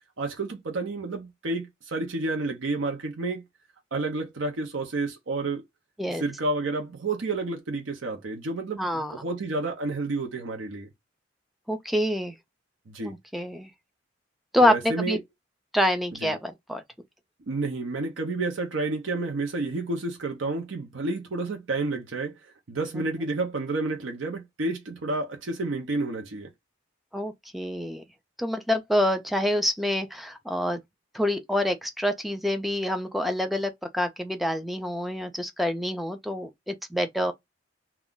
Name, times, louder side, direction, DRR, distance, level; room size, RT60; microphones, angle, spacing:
voice 1, 0.2-3.4 3.9-5.6 6.1-10.9 12.9-13.2 14.6-15.2 16.2-16.3 17.4-26.5, right 3 dB, 75° right, 0.7 m, -30 dB
voice 2, 8.8-9.1 11.7-12.4 13.0-13.7 14.5-15.2 15.7-16.8 23.0-23.1 27.1-28.0 28.4-30.8 31.1-37.3, left 1 dB, ahead, 0.4 m, -27 dB
2.4 x 2.3 x 3.6 m
head